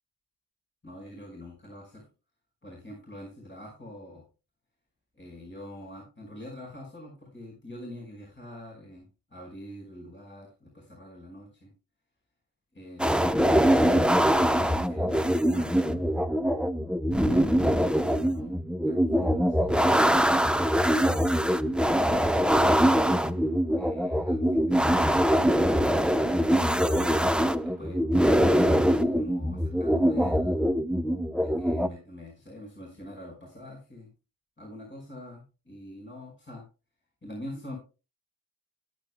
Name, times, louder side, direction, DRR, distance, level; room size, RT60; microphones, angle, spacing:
voice 1, 0.8-2.0 2.6-4.2 5.2-11.7 12.7-13.4 14.0-16.2 17.3-18.5 18.8-21.0 21.8-23.3 23.8-25.8 26.8-27.3 27.6-30.6 31.3-34.1 34.6-36.6 37.2-37.8, left 1 dB, 30° left, -2 dB, 5.2 m, -45 dB
sound 1, 13.0-31.9, equal, ahead, 0.8 m, -23 dB
19.5 x 8.2 x 2.2 m, 0.31 s
wide cardioid pair, 80°, 40 cm